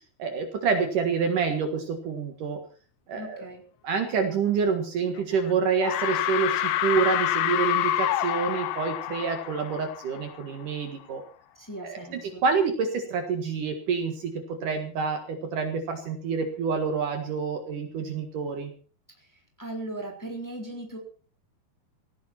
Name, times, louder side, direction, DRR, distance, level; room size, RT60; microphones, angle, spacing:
voice 1, 0.2-2.6 3.1-3.4 3.8-11.2 11.8-18.7, right 5 dB, 60° right, 6 dB, 3.1 m, -27 dB
voice 2, 3.1-3.6 11.6-12.4 19.2-19.3 19.6-21.0, right 1 dB, 5° left, 1 dB, 3.5 m, -38 dB
sound 1, 5.2-5.5 5.8-10.4, left 13 dB, 90° left, 3.0 m, -27 dB
17.5 x 15.0 x 4.4 m, 0.40 s
omnidirectional pair, 4.6 m